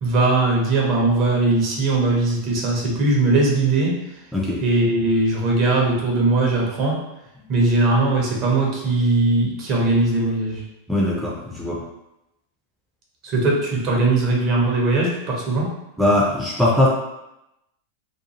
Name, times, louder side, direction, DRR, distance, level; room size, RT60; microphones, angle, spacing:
voice 1, 0.0-4.2 4.6-7.0 7.5-10.6 13.2-15.7, right 2 dB, 40° right, -2 dB, 0.8 m, -20 dB
voice 2, 4.3-4.6 10.9-11.8 16.0-16.9, left 1 dB, ahead, -4 dB, 0.5 m, -20 dB
2.6 x 2.3 x 2.8 m, 0.90 s
figure-of-eight pair, 90°, 0 cm